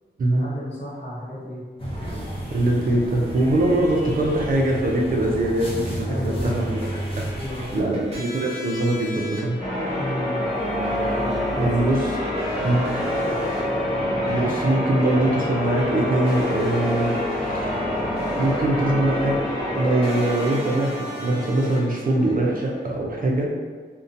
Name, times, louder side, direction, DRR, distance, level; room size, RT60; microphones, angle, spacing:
voice 1, 0.3-1.6 6.0-6.6 7.2-8.0 8.3-8.5 10.0-10.5 11.6-11.7 12.7-12.9 13.2-13.5, equal, 65° left, -9 dB, 0.9 m, -33 dB
sound 1, 1.8-7.8, right 1 dB, 30° left, 0.7 m, -31 dB
voice 2, 2.5-6.9 7.2-7.3 7.7-9.6 11.5-12.1 12.6-12.8 14.3-17.2 17.5-17.7 18.4-19.4 19.7-23.5, right 1 dB, 50° right, -2 dB, 0.4 m, -22 dB
sound 2, 7.7-22.9, equal, 30° right, 0.8 m, -38 dB
Church bell, 9.6-21.9, left 1 dB, ahead, 1.1 m, -26 dB
2.6 x 2.1 x 2.5 m, 1.5 s
wide cardioid pair, 85°, 19 cm